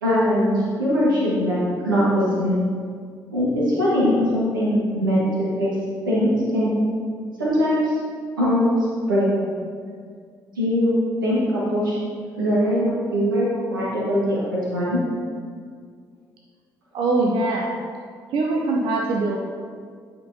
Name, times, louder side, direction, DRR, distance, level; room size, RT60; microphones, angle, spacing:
voice 1, 0.0-2.5 3.3-5.7 6.0-6.7 7.4-8.0 8.4-8.8 9.1-9.5 10.5-10.9 11.2-11.9 12.4-15.0, equal, 80° right, -7 dB, 1.4 m, -21 dB
voice 2, 16.9-17.8 18.3-19.4, right 2 dB, 55° right, -2 dB, 0.6 m, -22 dB
8.7 x 5.3 x 2.7 m, 2.1 s
figure-of-eight pair, 45°, 11 cm